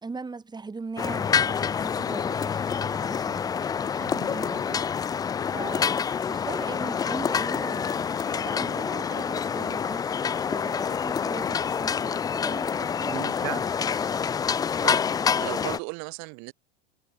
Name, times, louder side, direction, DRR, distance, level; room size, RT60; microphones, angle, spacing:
voice 1, 0.0-4.8 5.5-10.1 10.4-14.1, right 4 dB, 15° right, 4.2 m, -40 dB
sound 1, 1.0-15.8, left 7 dB, 10° left, 0.4 m, -27 dB
voice 2, 4.0-4.5 13.1-13.7 14.8-15.1 15.4-16.5, right 34 dB, 55° right, 7.6 m, -36 dB
hypercardioid pair, 110°, 33 cm